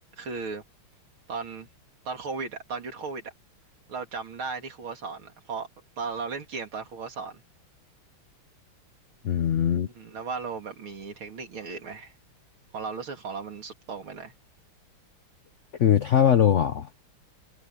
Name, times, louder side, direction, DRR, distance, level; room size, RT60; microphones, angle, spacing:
voice 1, 0.2-0.6 1.3-1.7 2.1-3.3 3.9-5.7 6.0-7.4 10.0-12.1 12.7-14.3, right 4 dB, 70° right, 3.5 m, -36 dB
voice 2, 9.2-9.9 15.8-16.9, left 9 dB, 70° left, 0.7 m, -21 dB
omnidirectional pair, 2.4 m